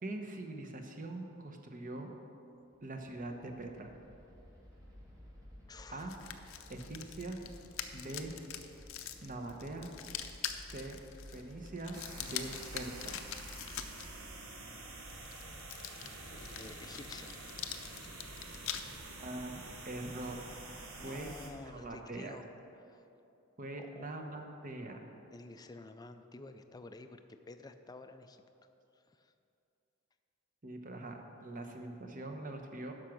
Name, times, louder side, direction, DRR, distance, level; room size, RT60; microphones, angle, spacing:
voice 1, 0.0-2.1 2.8-3.9 5.9-6.1 6.7-7.4 7.9-8.3 9.2-9.9 10.7-11.0 11.3-13.2 19.2-20.4 21.0-21.3 21.7-22.4 23.6-25.0 30.6-32.9, right 2 dB, 40° right, 4 dB, 0.9 m, -43 dB
sound 1, 2.6-22.0, equal, 20° right, 2.3 m, -55 dB
voice 2, 5.7-6.1 16.6-17.3 21.0-22.5 22.8-23.1 23.8-24.1 25.3-27.2 27.5-28.4 28.9-29.3, left 3 dB, 20° left, 8 dB, 0.4 m, -50 dB
sound 2, 6.0-14.1 15.1-18.8, left 10 dB, 70° left, 0.6 m, -44 dB
sound 3, 11.9-21.5, right 2 dB, 90° right, 1.3 m, -48 dB
9.9 x 6.1 x 6.0 m, 2.8 s
head